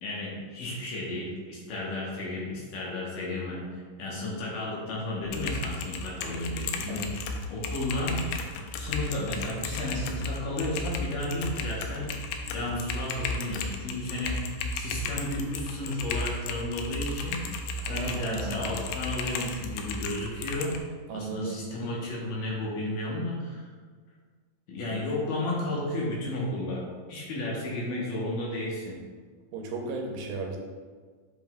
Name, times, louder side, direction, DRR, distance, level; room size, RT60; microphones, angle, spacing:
voice 1, 0.0-7.2 7.5-8.3 8.8-12.1 12.5-14.4 14.7-17.4 17.8-20.8 21.1-23.7 24.7-29.0, left 1 dB, 70° left, -4 dB, 2.6 m, -33 dB
Typing, 5.3-20.8, left 3 dB, 90° left, 2.4 m, -34 dB
voice 2, 17.8-18.7 21.1-21.7 29.5-30.6, right 3 dB, 80° right, 1 dB, 2.4 m, -35 dB
7.9 x 5.5 x 2.3 m, 1.5 s
omnidirectional pair, 4.2 m